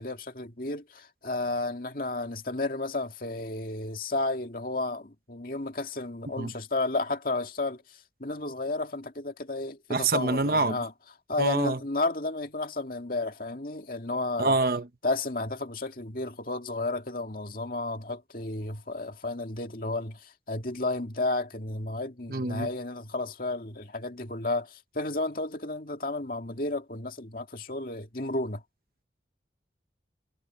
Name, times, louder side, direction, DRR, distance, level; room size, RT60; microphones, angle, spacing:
voice 1, 0.0-10.9 11.3-14.6 15.0-28.6, left 2 dB, 50° left, 2.2 m, -32 dB
voice 2, 9.9-10.8 11.4-11.8 14.4-14.9 22.3-22.7, right 3 dB, 55° right, 1.0 m, -26 dB
head